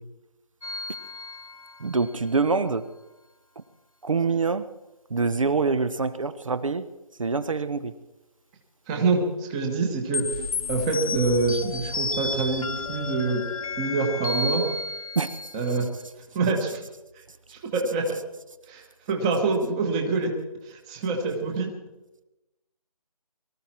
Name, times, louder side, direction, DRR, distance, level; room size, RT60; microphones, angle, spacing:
sound 1, 0.6-2.2 10.1-15.9, left 3 dB, 60° left, 0.9 m, -32 dB
voice 1, 1.8-2.9 4.0-4.7 5.1-6.9 7.2-7.9 15.1-15.4, right 4 dB, 55° right, 13 dB, 1.0 m, -25 dB
voice 2, 8.9-13.4 13.8-14.7 15.5-15.8 16.3-16.8 17.5-18.1 18.7-20.3 20.6-21.7, right 3 dB, 10° right, 3 dB, 1.1 m, -26 dB
23.0 x 14.0 x 4.4 m, 0.98 s
figure-of-eight pair, 165°, 20 cm